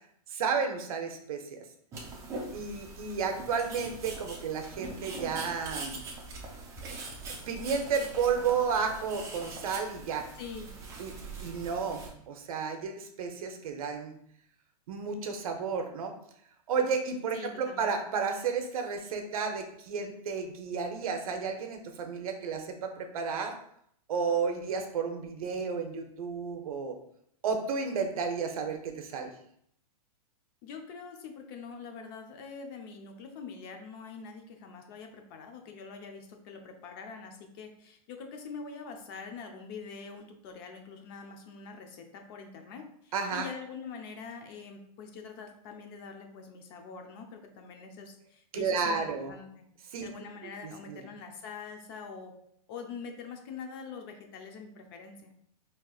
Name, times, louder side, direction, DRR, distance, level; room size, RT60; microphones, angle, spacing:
voice 1, 0.3-1.6 2.5-6.0 6.8-10.3 11.0-14.1 14.9-16.1 16.7-23.6 24.1-27.0 27.4-29.3 43.1-43.5 48.5-49.3 49.9-50.1 50.6-51.0, right 5 dB, 65° right, 5 dB, 0.7 m, -32 dB
sound 1, 1.9-12.1, right 3 dB, 15° right, 0.5 m, -42 dB
voice 2, 10.4-10.7 17.3-17.9 30.6-49.0 49.3-49.7 50.0-52.3 52.7-55.3, left 5 dB, 35° left, 5 dB, 0.6 m, -44 dB
4.5 x 2.9 x 2.4 m, 0.70 s
hypercardioid pair, 155°, 20 cm